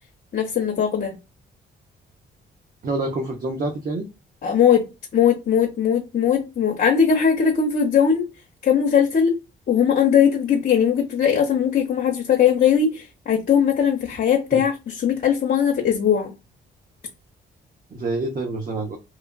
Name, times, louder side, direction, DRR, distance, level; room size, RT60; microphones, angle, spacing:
voice 1, 0.3-1.2 4.4-4.8 5.1-8.3 8.6-9.4 9.7-16.3, left 8 dB, 50° left, 0.8 m, -19 dB
voice 2, 2.8-4.1 14.5-14.6 17.9-19.0, right 2 dB, 45° right, 0.8 m, -27 dB
3.1 x 2.3 x 2.3 m
cardioid pair, 90°, 20 cm